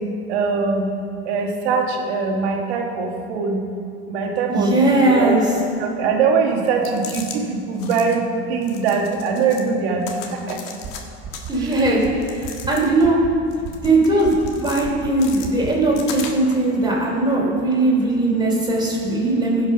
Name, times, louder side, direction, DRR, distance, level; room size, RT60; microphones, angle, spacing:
voice 1, 0.3-0.9 1.2-3.7 4.1-5.3 5.8-10.8, right 4 dB, 85° right, 2 dB, 1.6 m, -22 dB
voice 2, 4.5-5.5 11.5-13.2 13.8-14.3 14.6-19.7, right 2 dB, 15° right, -4 dB, 3.2 m, -19 dB
sound 1, 6.7-7.4 7.7-8.2 8.6-9.7 10.0-11.0 11.3-13.1 13.5-14.8 15.2-16.6, left 6 dB, 75° left, 1.5 m, -37 dB
sound 2, 10.8-10.9 11.2-11.5 11.8-12.1 12.4-12.7 13.0-13.3 13.6-13.9 14.2-14.5 14.8-15.1 15.4-15.7, right 8 dB, 40° right, 1.0 m, -32 dB
16.0 x 6.0 x 5.4 m, 2.4 s
supercardioid pair, 115°, 31 cm